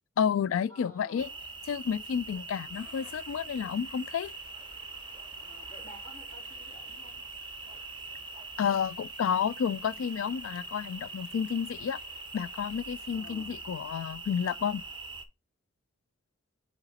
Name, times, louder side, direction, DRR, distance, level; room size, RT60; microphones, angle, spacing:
voice 1, 0.2-1.3 1.7-4.3 8.6-12.0 12.3-14.8, left 7 dB, 70° left, 0.3 m, -30 dB
voice 2, 0.7-1.4 2.5-2.9 5.4-7.2 13.1-13.6, equal, 15° left, 3.2 m, -52 dB
sound 1, 1.2-15.2, right 3 dB, 20° right, 0.7 m, -43 dB
sound 2, 2.7-13.2, left 3 dB, 85° left, 1.9 m, -57 dB
8.0 x 3.0 x 4.1 m
head